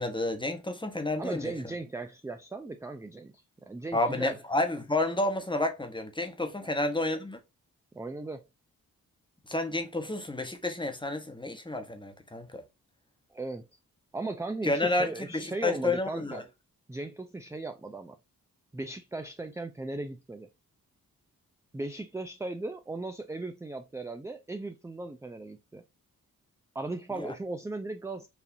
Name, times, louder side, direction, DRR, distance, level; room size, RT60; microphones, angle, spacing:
voice 1, 0.0-1.5 3.9-7.4 9.5-12.6 14.6-16.4 27.2-27.3, left 2 dB, 15° left, 1.0 m, -30 dB
voice 2, 1.2-4.4 6.6-6.8 7.9-8.4 13.3-13.7 14.1-16.4 16.9-18.2 18.7-20.5 21.7-25.8 26.7-28.3, right 2 dB, 10° right, 0.4 m, -37 dB
4.9 x 2.6 x 2.6 m
cardioid pair, 55°, 36 cm